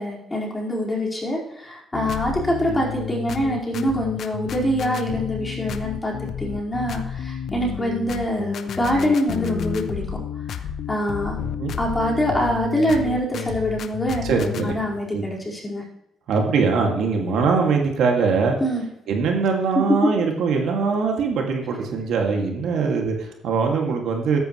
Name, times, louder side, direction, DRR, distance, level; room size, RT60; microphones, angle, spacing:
voice 1, 0.0-10.2 10.9-11.4 11.8-15.8 18.6-18.8, equal, 15° left, -3 dB, 4.8 m, -25 dB
sound 1, 1.9-14.7, left 8 dB, 65° left, 0.9 m, -31 dB
voice 2, 11.4-11.7 14.2-14.8 15.1-15.2 16.3-18.6 19.1-24.4, right 5 dB, 75° right, 2 dB, 2.3 m, -22 dB
14.0 x 10.5 x 3.2 m, 0.81 s
cardioid pair, 90°, 0 cm